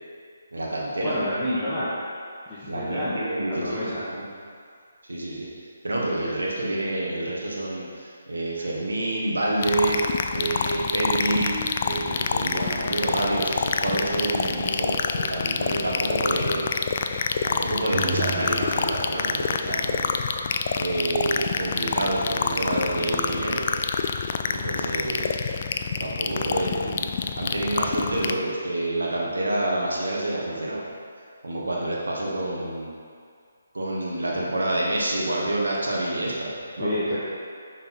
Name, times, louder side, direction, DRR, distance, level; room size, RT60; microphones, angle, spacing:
voice 1, 0.5-1.2 2.7-4.2 5.1-5.5 5.8-10.0 10.3-11.5 11.8-16.6 17.4-20.2 20.8-23.6 24.5-25.4 26.0-30.8 31.4-32.9 33.7-37.0, right 1 dB, 80° right, -4 dB, 1.3 m, -28 dB
voice 2, 1.0-1.9 2.5-4.0 36.8-37.2, left 1 dB, 10° left, -14 dB, 1.2 m, -29 dB
sound 1, 9.6-28.3, left 6 dB, 40° left, 0.3 m, -27 dB
sound 2, 17.9-20.1, right 4 dB, 50° right, 1.0 m, -34 dB
5.9 x 4.0 x 4.5 m, 2.2 s
figure-of-eight pair, 150°, 0 cm